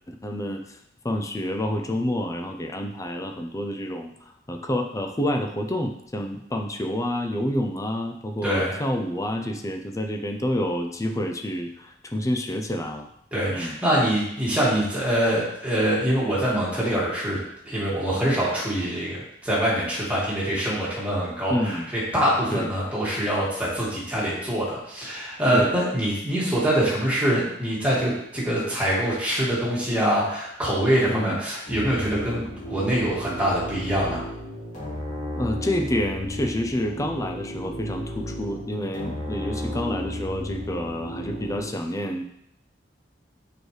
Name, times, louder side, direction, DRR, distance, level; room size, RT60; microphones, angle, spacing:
voice 1, 0.1-0.8 1.0-13.1 13.5-13.8 21.5-21.9 22.5-22.7 25.5-25.7 31.1-31.4 35.3-42.2, left 1 dB, 20° left, 4 dB, 0.6 m, -28 dB
voice 2, 8.4-8.7 13.3-17.4 17.6-34.2, right 1 dB, 10° right, -7 dB, 2.1 m, -24 dB
sound 1, 31.7-41.7, left 1 dB, 45° left, 2.6 m, -34 dB
6.7 x 4.8 x 3.3 m, 0.76 s
head